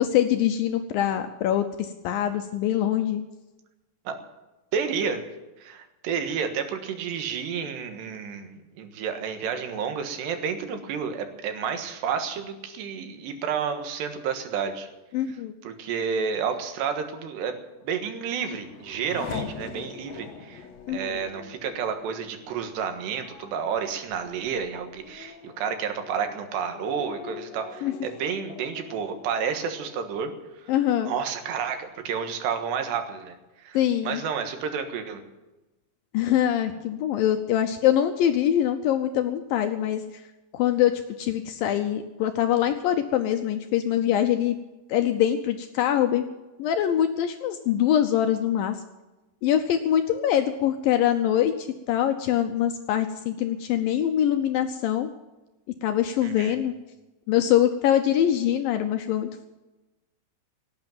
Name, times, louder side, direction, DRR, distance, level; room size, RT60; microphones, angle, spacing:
voice 1, 0.0-3.2 15.1-15.5 20.9-21.0 27.8-27.9 30.7-31.1 33.7-34.2 36.1-40.0 40.5-40.9 41.2-44.6 44.9-46.2 46.6-48.8 49.4-55.1 55.8-56.7 57.3-59.5, left 11 dB, 75° left, 7 dB, 2.1 m, -23 dB
voice 2, 4.7-5.3 5.6-14.9 15.3-15.4 15.6-17.6 17.8-30.7 31.1-35.2 56.2-56.5, right 6 dB, 85° right, 7 dB, 3.7 m, -30 dB
Race car auto racing / Accelerating revving vroom, 17.8-31.0 31.4-32.1, left 6 dB, 55° left, 2.2 m, -43 dB
18.0 x 8.7 x 9.0 m, 1.1 s
omnidirectional pair, 4.8 m